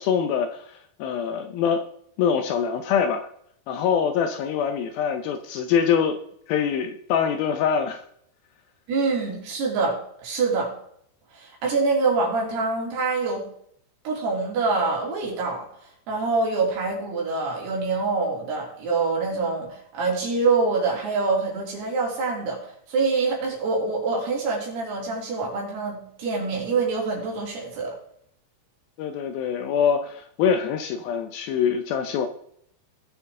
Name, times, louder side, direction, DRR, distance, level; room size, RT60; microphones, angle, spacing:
voice 1, 0.0-1.8 2.2-3.3 3.7-6.2 6.5-8.0 29.0-32.3, left 7 dB, 75° left, 7 dB, 2.3 m, -24 dB
voice 2, 8.9-10.7 11.3-13.5 14.0-15.7 16.1-22.6 22.9-27.9, right 4 dB, 75° right, -2 dB, 5.2 m, -25 dB
19.0 x 7.0 x 3.7 m, 0.69 s
omnidirectional pair, 4.7 m